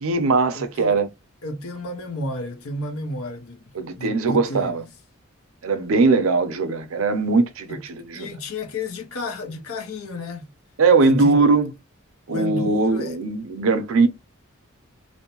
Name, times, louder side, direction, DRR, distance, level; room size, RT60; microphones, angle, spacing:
voice 1, 0.0-1.1 3.8-4.8 5.6-8.3 10.8-11.7 12.3-14.1, right 3 dB, 70° right, 0.5 m, -20 dB
voice 2, 0.5-1.0 1.4-3.6 4.0-5.0 7.7-7.8 8.1-10.5 11.0-11.4 12.3-13.2, left 2 dB, 85° left, 0.7 m, -31 dB
2.6 x 2.1 x 2.8 m
head